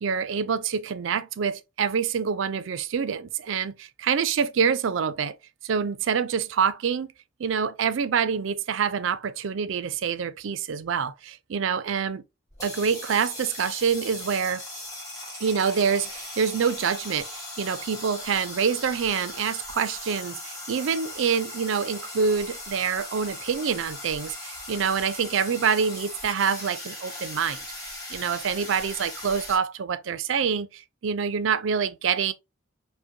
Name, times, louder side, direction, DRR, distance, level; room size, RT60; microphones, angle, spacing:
voice 1, 0.0-5.4 5.6-7.1 7.4-12.2 12.6-14.6 15.4-32.3, right 6 dB, 70° right, 0.4 m, -26 dB
sound 1, 12.5-29.6, left 1 dB, 15° left, 1.6 m, -39 dB
5.0 x 2.1 x 2.6 m
head